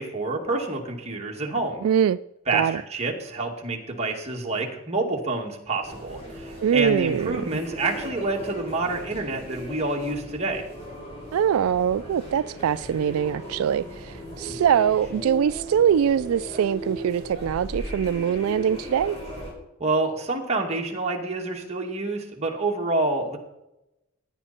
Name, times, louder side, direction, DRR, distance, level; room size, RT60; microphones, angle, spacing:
voice 1, 0.0-1.8 2.5-10.6 19.8-23.4, right 2 dB, 30° right, 2.3 m, -28 dB
voice 2, 1.8-2.2 2.5-2.8 6.6-7.4 11.3-19.2, right 8 dB, 80° right, 0.3 m, -23 dB
sound 1, 5.8-19.5, equal, 30° left, 4.7 m, -37 dB
16.5 x 9.9 x 4.3 m
head